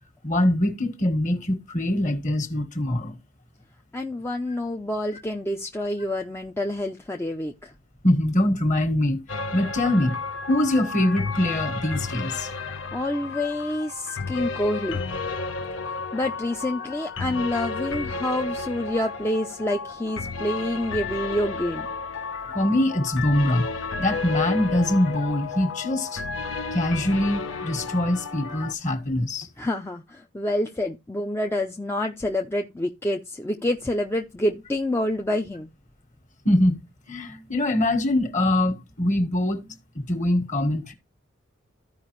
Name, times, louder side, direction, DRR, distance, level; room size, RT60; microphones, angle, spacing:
voice 1, 0.2-3.1 8.0-9.2 9.5-10.2 10.5-12.7 22.5-23.7 24.0-26.2 26.7-29.5 36.4-36.8 37.1-40.9, left 1 dB, 40° left, 1.6 m, -23 dB
voice 2, 3.9-7.7 12.6-15.0 16.1-21.9 29.6-35.7, left 1 dB, 10° left, 0.5 m, -27 dB
sound 1, 9.3-28.7, left 4 dB, 75° left, 1.0 m, -32 dB
14.0 x 4.9 x 3.1 m
head